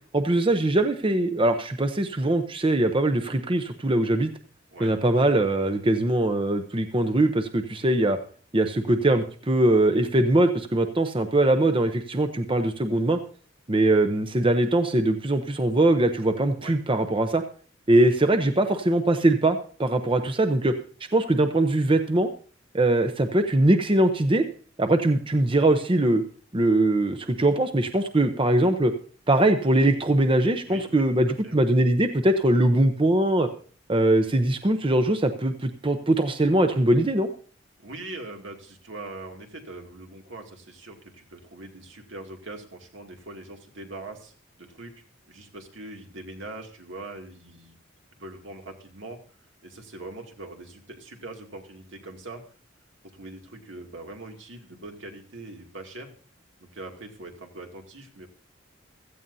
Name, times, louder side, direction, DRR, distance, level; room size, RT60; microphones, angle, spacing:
voice 1, 0.1-4.3 4.8-8.2 8.5-13.2 13.7-17.4 17.9-20.7 21.1-22.3 22.7-24.4 24.8-26.2 26.5-28.9 29.3-33.5 33.9-37.3, right 1 dB, 30° right, 8 dB, 0.8 m, -22 dB
voice 2, 30.6-31.6 37.8-44.9 45.3-47.8 48.2-49.2 49.6-52.4 53.1-56.1 56.6-58.3, right 2 dB, 75° right, 3 dB, 2.4 m, -42 dB
16.5 x 14.0 x 2.7 m, 0.43 s
head